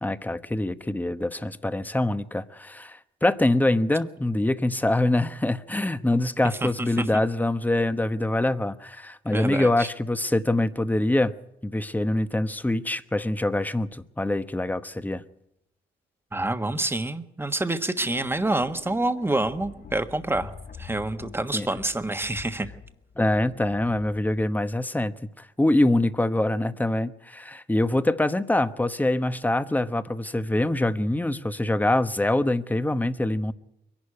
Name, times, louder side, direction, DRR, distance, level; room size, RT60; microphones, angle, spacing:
voice 1, 0.0-11.3 11.6-15.2 21.5-21.7 23.2-33.5, left 1 dB, 10° left, 1.0 m, -24 dB
voice 2, 9.3-9.9 16.3-20.5 20.8-22.7, right 2 dB, 10° right, 1.4 m, -27 dB
sound 1, 18.0-24.9, left 6 dB, 45° left, 1.2 m, -45 dB
23.0 x 11.5 x 9.8 m
cardioid pair, 90°, 20 cm